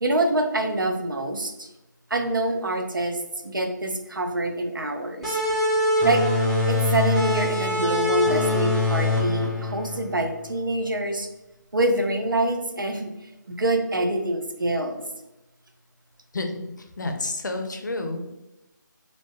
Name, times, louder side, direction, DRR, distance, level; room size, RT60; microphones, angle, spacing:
voice 1, 0.0-1.7 2.1-5.4 6.0-6.2 6.7-11.3 11.7-15.0, right 1 dB, 90° right, 4 dB, 0.5 m, -25 dB
sound 1, 5.2-10.5, left 2 dB, ahead, 0.4 m, -23 dB
voice 2, 16.8-18.2, left 2 dB, 65° left, 5 dB, 0.4 m, -30 dB
2.5 x 2.1 x 3.1 m, 0.97 s
figure-of-eight pair, 150°, 11 cm